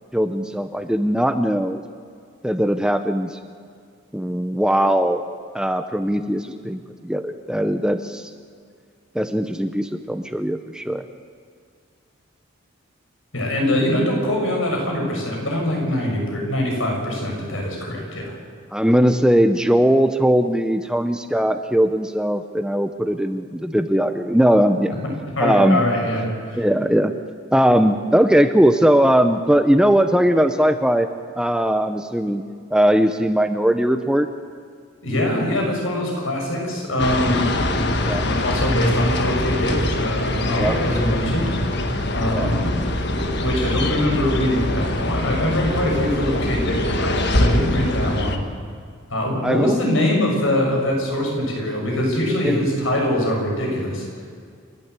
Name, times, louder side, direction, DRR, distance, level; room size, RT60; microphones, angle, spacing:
voice 1, 0.1-1.8 2.4-3.4 4.1-5.2 5.5-8.3 9.1-11.0 18.7-24.9 25.4-25.8 26.6-27.1 27.5-31.1 31.4-32.4 32.7-34.3 38.0-38.3 40.5-40.8 42.2-42.5 49.4-49.9 52.4-52.6, equal, 5° right, 8 dB, 0.7 m, -19 dB
voice 2, 13.3-18.3 25.4-26.6 35.0-37.5 38.1-41.7 42.1-42.7 43.2-48.4 49.1-54.1, left 1 dB, 75° left, 0 dB, 6.6 m, -23 dB
sound 1, 37.0-48.4, left 1 dB, 55° left, 1.6 m, -23 dB
29.0 x 12.5 x 8.2 m, 2.2 s
head